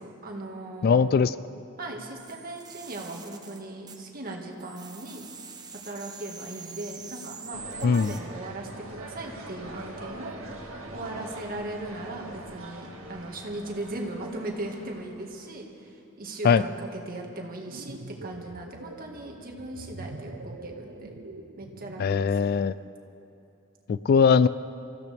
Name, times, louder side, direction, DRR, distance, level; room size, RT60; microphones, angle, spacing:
voice 1, 0.0-1.3 1.8-5.3 5.8-10.4 10.9-21.1 21.6-22.5, right 2 dB, 45° right, 0 dB, 1.9 m, -38 dB
voice 2, 0.8-1.3 7.8-8.1 16.4-16.6 22.0-22.7 23.9-24.5, left 6 dB, 50° left, 15 dB, 0.3 m, -20 dB
sound 1, 2.2-4.3 4.6-8.2, right 5 dB, 20° right, 1.1 m, -44 dB
sound 2, 7.5-15.5, right 2 dB, 90° right, 2.1 m, -43 dB
sound 3, 17.6-22.2, right 2 dB, 65° right, 0.8 m, -44 dB
26.0 x 15.0 x 3.5 m, 2.8 s
head